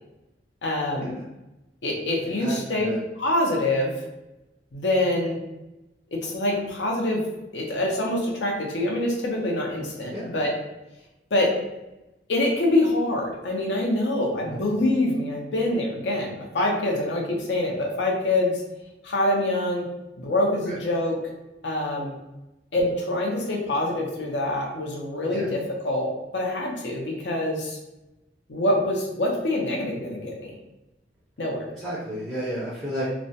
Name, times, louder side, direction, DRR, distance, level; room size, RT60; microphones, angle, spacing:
voice 1, 0.6-1.1 1.8-2.9 3.2-3.9 4.7-5.4 6.1-7.3 7.5-10.5 11.3-11.5 12.3-18.6 19.0-19.9 20.2-21.2 21.6-22.1 22.7-27.8 28.5-30.5 31.4-31.7, left 1 dB, 75° left, 0 dB, 0.6 m, -25 dB
voice 2, 2.2-3.0 10.1-10.3 14.4-14.8 20.7-20.8 25.3-25.5 31.7-33.1, equal, ahead, -7 dB, 0.5 m, -33 dB
2.3 x 2.1 x 2.7 m, 0.96 s
head